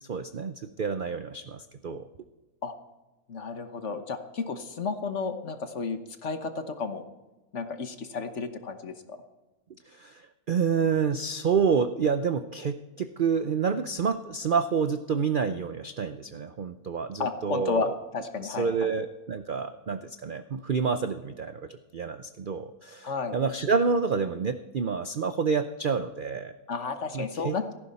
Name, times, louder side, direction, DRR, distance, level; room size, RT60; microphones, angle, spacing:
voice 1, 0.0-2.1 9.9-17.9 18.4-26.6 27.1-27.6, right 5 dB, 60° right, 9 dB, 0.5 m, -28 dB
voice 2, 3.3-7.0 7.5-9.2 17.2-17.9 18.1-18.7 23.0-23.4 26.7-27.7, left 4 dB, 50° left, 8 dB, 1.3 m, -32 dB
17.0 x 14.5 x 4.2 m, 1.1 s
omnidirectional pair, 1.6 m